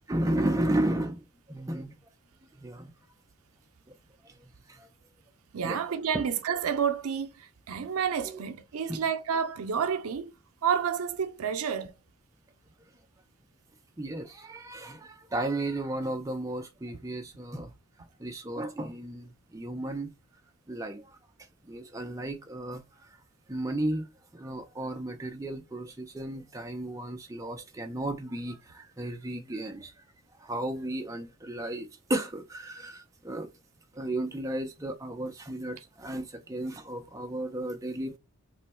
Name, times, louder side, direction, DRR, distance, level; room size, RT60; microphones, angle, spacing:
voice 1, 0.1-1.9 2.6-2.9 4.7-4.9 5.6-5.8 8.9-9.0 14.0-17.7 18.2-20.1 20.7-21.0 21.7-22.8 23.5-24.1 24.3-29.9 30.4-33.5 34.0-38.2, right 1 dB, 15° right, 0.4 m, -33 dB
voice 2, 5.5-10.3 10.6-11.9, right 7 dB, 85° right, 0.5 m, -30 dB
3.1 x 2.2 x 4.2 m
head